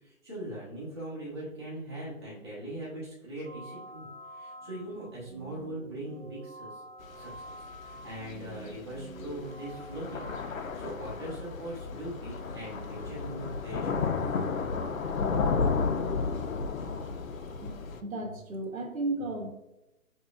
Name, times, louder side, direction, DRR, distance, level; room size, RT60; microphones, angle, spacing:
voice 1, 0.0-4.1 4.3-6.8 7.1-7.4 7.8-10.3 10.7-13.9, right 1 dB, 20° right, -9 dB, 0.7 m, -40 dB
sound 1, 3.4-10.5, right 2 dB, 55° right, 0.7 m, -47 dB
Thunder / Rain, 7.0-18.0, left 5 dB, 70° left, 0.6 m, -33 dB
voice 2, 18.0-19.5, right 2 dB, 75° right, 2 dB, 1.0 m, -34 dB
5.5 x 2.9 x 2.3 m, 0.96 s
hypercardioid pair, 170°, 43 cm